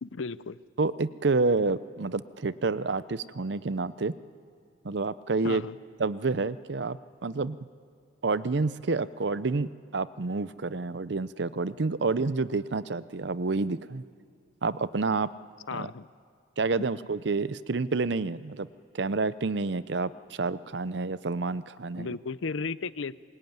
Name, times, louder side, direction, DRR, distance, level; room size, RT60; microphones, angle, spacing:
voice 1, 0.0-0.6 5.4-5.8 15.7-16.1 21.9-23.1, left 4 dB, 85° left, 17 dB, 0.6 m, -34 dB
voice 2, 0.8-4.1 4.8-5.6 6.0-7.6 8.2-14.0 14.6-15.3 15.7-15.9 16.6-18.7 18.9-22.2, right 3 dB, 60° right, 16 dB, 0.6 m, -29 dB
25.0 x 21.5 x 9.5 m, 2.3 s
head